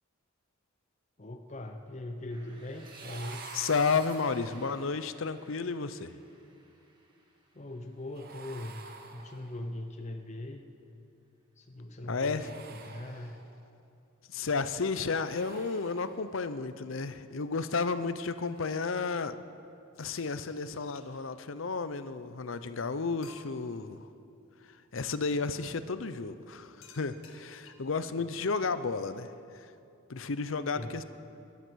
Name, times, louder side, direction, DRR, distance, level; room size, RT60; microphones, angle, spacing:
voice 1, 1.2-3.7 7.5-8.8 9.1-10.6 11.6-13.4 30.7-31.0, left 1 dB, 35° left, 4 dB, 0.7 m, -41 dB
sound 1, 2.3-8.2, right 2 dB, 20° right, 1.8 m, -55 dB
sound 2, 2.7-4.9 8.1-9.8 12.2-13.7 15.1-16.5 18.5-18.7, right 4 dB, 45° right, 1.1 m, -49 dB
voice 2, 3.5-6.1 12.0-12.5 14.3-19.3 20.0-24.1 24.9-29.7 30.1-31.0, left 4 dB, 65° left, 12 dB, 0.7 m, -32 dB
sound 3, 19.9-21.4 22.3-22.4 22.8-22.9 23.2-23.8 25.5-25.8 26.8-28.0, left 4 dB, 85° left, 1.7 m, -56 dB
19.0 x 12.0 x 6.3 m, 2.7 s
head